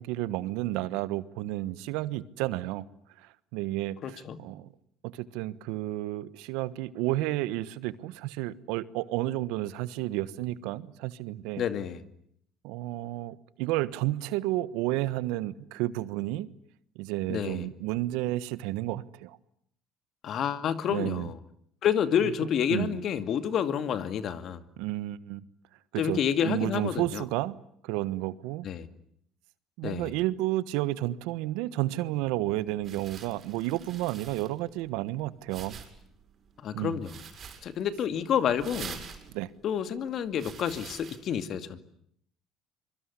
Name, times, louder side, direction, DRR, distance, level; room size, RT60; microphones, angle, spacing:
voice 1, 0.0-2.9 3.2-4.7 5.0-11.6 12.6-16.5 16.9-19.4 20.9-21.3 22.7-23.0 24.8-25.5 25.9-27.6 27.8-28.7 29.8-35.8 36.7-37.0 39.3-39.5, right 16 dB, 80° right, 17 dB, 1.2 m, -31 dB
voice 2, 4.0-4.4 11.6-12.0 17.3-17.7 20.2-21.3 21.8-24.6 26.0-27.2 28.6-28.9 29.8-30.1 36.6-37.1 37.6-39.0 39.6-41.8, left 8 dB, 55° left, 11 dB, 2.3 m, -29 dB
sound 1, 32.4-41.2, right 7 dB, 50° right, 6.5 m, -47 dB
25.5 x 23.5 x 9.8 m, 0.69 s
supercardioid pair, 85°, 0 cm